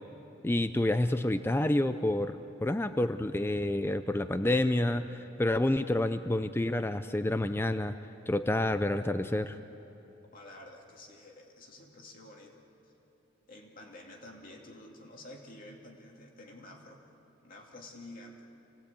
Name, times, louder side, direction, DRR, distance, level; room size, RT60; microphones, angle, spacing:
voice 1, 0.4-8.0 8.3-9.6, left 1 dB, 10° left, 10 dB, 0.4 m, -29 dB
voice 2, 10.3-12.9 13.5-17.0 17.4-18.5, left 1 dB, 45° left, 1 dB, 2.6 m, -50 dB
27.0 x 18.5 x 8.4 m, 2.9 s
head